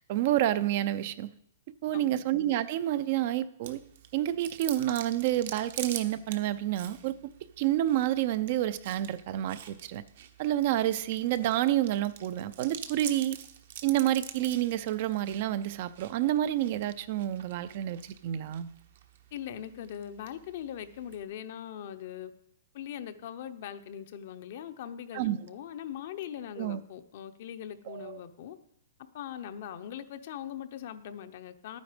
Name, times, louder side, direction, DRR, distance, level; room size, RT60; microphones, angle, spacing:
voice 1, 0.0-1.3 1.8-3.8 4.1-7.2 7.6-10.0 10.4-13.4 13.8-18.7 25.1-25.4 26.6-26.8 27.9-28.2, right 13 dB, 50° right, 14 dB, 0.5 m, -29 dB
Chewing mastication, 3.6-21.2, right 9 dB, 65° right, 1.1 m, -46 dB
voice 2, 19.3-22.3 22.7-28.6 29.1-31.8, left 10 dB, 55° left, 10 dB, 0.8 m, -41 dB
11.0 x 9.2 x 5.1 m, 0.73 s
hypercardioid pair, 155°, 0 cm